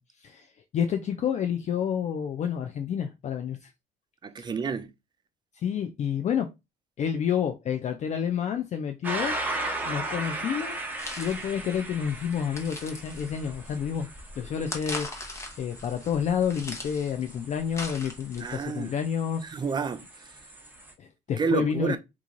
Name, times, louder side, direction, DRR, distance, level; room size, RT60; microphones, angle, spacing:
voice 1, 0.7-3.7 5.6-6.5 7.0-9.4 9.8-10.8 11.2-14.1 14.4-15.1 15.6-19.4 21.0-22.0, left 8 dB, 45° left, 0.4 m, -29 dB
voice 2, 4.2-4.9 18.4-18.9 19.5-20.0 21.4-22.0, right 5 dB, 25° right, 0.4 m, -29 dB
sound 1, 9.0-20.9, right 2 dB, 10° right, 0.9 m, -38 dB
sound 2, 11.0-18.6, left 2 dB, 15° left, 0.9 m, -41 dB
3.0 x 2.4 x 3.7 m
cardioid pair, 110°, 17 cm